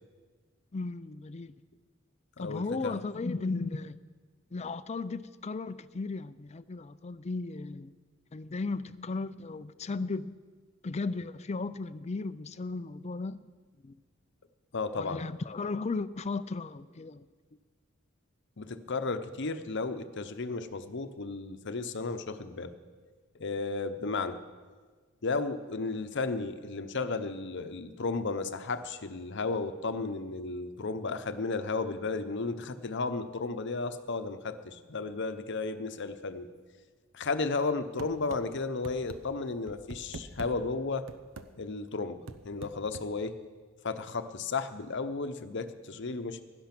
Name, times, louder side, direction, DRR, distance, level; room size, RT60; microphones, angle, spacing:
voice 1, 0.7-1.6 2.4-4.0 4.5-7.9 8.3-10.4 10.8-13.4 13.8-14.0 15.0-17.3, left 3 dB, 35° left, 0.5 m, -35 dB
voice 2, 2.4-3.0 14.7-15.2 18.6-22.7 23.3-24.4 25.2-36.5 37.1-41.1 41.6-43.4 43.8-46.4, left 3 dB, 60° left, 0.8 m, -34 dB
sound 1, 38.0-38.4 38.8-39.2 39.7-40.5 41.1-41.5 42.3-43.1, right 3 dB, 75° right, 0.8 m, -42 dB
16.0 x 11.5 x 6.0 m
head